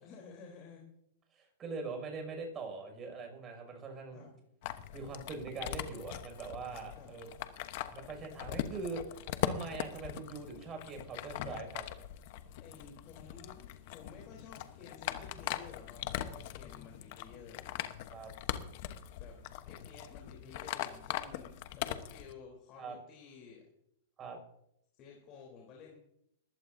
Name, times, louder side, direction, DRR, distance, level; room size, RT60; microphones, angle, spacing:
voice 1, 0.0-0.8 4.1-4.3 6.9-7.2 12.6-17.7 19.2-19.4 19.7-23.6 25.0-25.9, left 5 dB, 35° left, -1 dB, 3.6 m, -53 dB
voice 2, 1.3-4.2 4.9-7.3 7.9-9.0 9.4-11.8 18.1-18.3 22.8-23.0 24.2-24.4, right 4 dB, 25° right, 3 dB, 6.1 m, -42 dB
sound 1, 4.6-22.3, left 12 dB, 55° left, 1.0 m, -41 dB
20.0 x 15.5 x 2.7 m, 0.77 s
hypercardioid pair, 135°, 0 cm